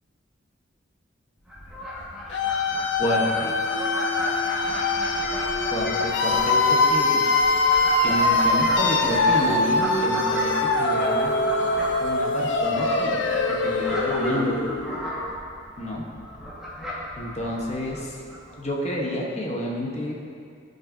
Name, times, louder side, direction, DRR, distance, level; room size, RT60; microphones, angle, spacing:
Fowl, 1.4-18.7, left 1 dB, 5° right, 1.4 m, -34 dB
sound 1, 2.3-15.1, left 2 dB, 70° left, 0.5 m, -23 dB
voice 1, 3.0-3.6 5.7-7.2 8.0-14.5 15.8-16.0 17.2-18.2 18.6-20.2, left 1 dB, 35° left, -2 dB, 1.0 m, -30 dB
12.5 x 5.3 x 2.6 m, 2.4 s
head